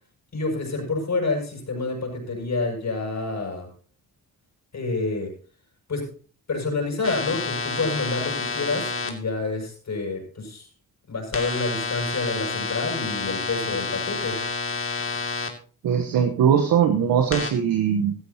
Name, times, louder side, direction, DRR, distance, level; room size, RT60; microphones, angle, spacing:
voice 1, 0.3-3.7 4.7-5.3 5.9-6.1 6.5-10.7 11.1-14.4, left 3 dB, 55° left, 1 dB, 7.2 m, -28 dB
sound 1, 7.0-9.1 11.3-15.5 17.3-17.5, left 4 dB, 40° left, 2.6 m, -29 dB
voice 2, 15.8-18.1, right 8 dB, 80° right, 5 dB, 1.2 m, -20 dB
16.0 x 13.0 x 2.9 m, 0.39 s
supercardioid pair, 50°, 34 cm